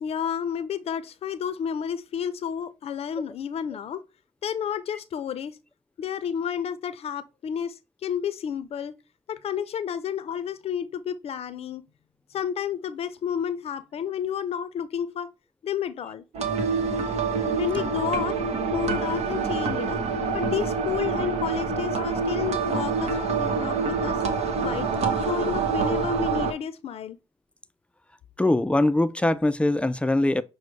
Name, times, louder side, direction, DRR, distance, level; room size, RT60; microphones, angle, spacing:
voice 1, 0.0-4.0 4.4-5.6 6.0-9.0 9.3-11.8 12.3-15.3 15.6-16.2 17.6-18.4 18.7-20.0 20.3-24.2 24.6-27.2, left 8 dB, 65° left, 0.5 m, -31 dB
sound 1, 16.3-26.5, right 5 dB, 75° right, 0.8 m, -26 dB
voice 2, 28.4-30.4, left 2 dB, 10° left, 0.3 m, -22 dB
6.1 x 2.1 x 3.1 m
cardioid pair, 70°, 11 cm